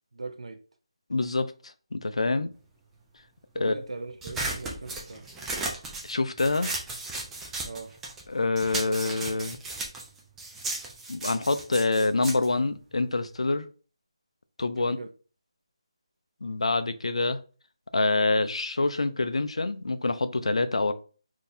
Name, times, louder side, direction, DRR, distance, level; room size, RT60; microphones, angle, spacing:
voice 1, 0.1-0.6 3.5-5.3 7.6-7.9 14.8-15.1, right 3 dB, 85° right, 0.5 m, -39 dB
voice 2, 1.1-2.5 3.6-3.7 6.0-6.7 8.3-9.6 11.1-13.7 14.6-15.0 16.4-17.4 17.9-20.9, left 3 dB, 85° left, 0.4 m, -26 dB
sound 1, 4.2-8.3 8.6-13.4, right 2 dB, 5° right, 0.4 m, -35 dB
3.8 x 2.7 x 2.6 m
figure-of-eight pair, 165°, 3 cm